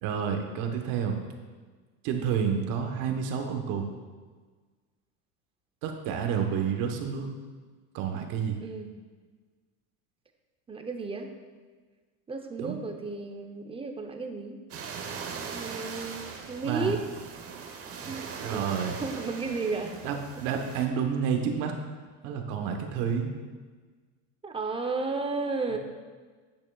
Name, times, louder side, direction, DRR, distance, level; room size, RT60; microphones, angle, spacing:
voice 1, 0.0-1.2 2.0-3.9 5.8-7.3 7.9-8.6 12.6-12.8 16.6-16.9 18.4-19.0 20.0-21.8 22.2-23.3 25.7-25.8, right 7 dB, 65° right, 4 dB, 1.1 m, -29 dB
voice 2, 8.6-8.9 10.7-11.3 12.3-14.6 15.5-16.2 16.5-17.0 18.0-20.1 24.4-25.8, right 4 dB, 15° right, 5 dB, 0.7 m, -33 dB
sound 1, 14.7-20.9, right 5 dB, 40° right, 1.0 m, -40 dB
8.8 x 8.6 x 2.3 m, 1.4 s
supercardioid pair, 120°, 36 cm